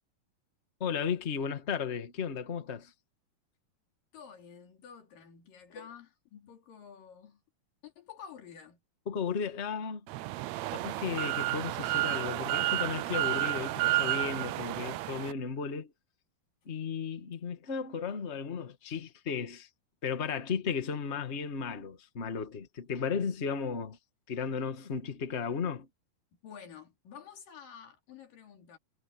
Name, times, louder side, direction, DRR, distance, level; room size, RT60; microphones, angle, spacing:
voice 1, 0.8-2.9 5.7-5.8 9.1-10.0 10.7-15.9 16.6-19.7 20.0-24.0 24.3-25.9, left 6 dB, 35° left, 1.1 m, -35 dB
voice 2, 4.1-7.4 7.8-8.8 26.3-28.8, left 7 dB, 75° left, 4.7 m, -50 dB
sound 1, 10.1-15.3, right 17 dB, 90° right, 1.5 m, -31 dB
omnidirectional pair, 4.0 m